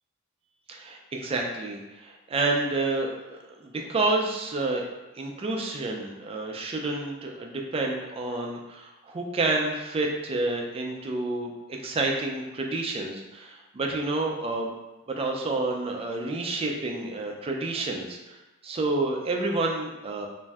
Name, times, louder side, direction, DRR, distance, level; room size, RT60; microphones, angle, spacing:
voice 1, 0.7-4.9 5.1-14.7 15.1-18.4 18.6-20.3, right 2 dB, 30° right, 1 dB, 0.3 m, -29 dB
2.5 x 2.1 x 3.4 m, 1.1 s
head